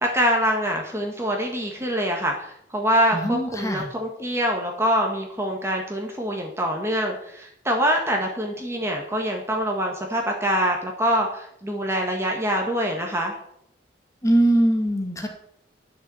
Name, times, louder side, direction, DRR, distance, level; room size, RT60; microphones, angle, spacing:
voice 1, 0.0-13.3, equal, 15° right, 1 dB, 1.7 m, -25 dB
voice 2, 3.1-3.8 14.2-15.3, right 1 dB, 15° left, 2 dB, 2.2 m, -21 dB
12.0 x 6.8 x 7.8 m, 0.71 s
head